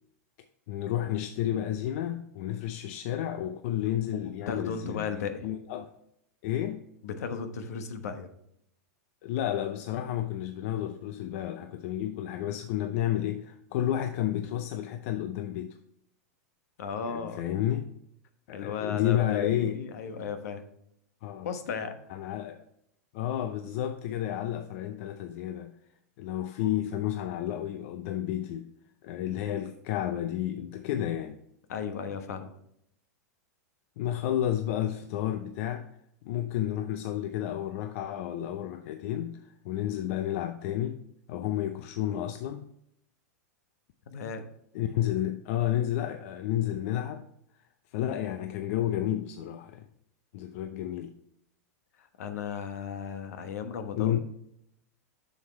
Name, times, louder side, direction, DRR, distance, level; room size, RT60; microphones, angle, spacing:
voice 1, 0.7-5.1 5.4-5.9 6.4-6.8 9.2-15.7 17.0-17.9 18.5-19.8 21.2-21.5 22.1-22.6 23.1-25.7 26.2-28.7 29.0-31.4 34.0-35.9 36.2-41.0 41.3-42.7 44.7-47.2 47.9-49.8 50.3-51.1 53.9-54.2, left 11 dB, 60° left, 0.6 m, -31 dB
voice 2, 4.5-5.5 7.0-8.3 16.8-17.4 18.5-20.6 21.4-21.9 31.7-32.5 44.1-44.4 52.0-54.2, left 6 dB, 75° left, 1.1 m, -35 dB
7.9 x 6.6 x 3.2 m
hypercardioid pair, 120°, 9 cm